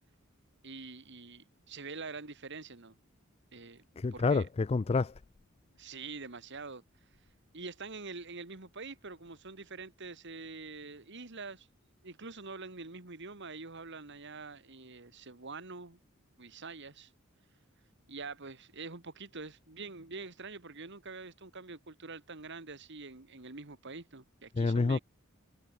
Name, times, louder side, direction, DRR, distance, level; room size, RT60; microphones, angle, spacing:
voice 1, 0.6-2.9 3.5-3.8 4.1-4.5 5.8-6.8 7.5-11.7 12.0-16.0 16.4-17.1 18.1-25.0, right 4 dB, 60° right, 2.2 m, -45 dB
voice 2, 4.0-5.1 24.6-25.0, left 4 dB, 30° left, 0.4 m, -28 dB
head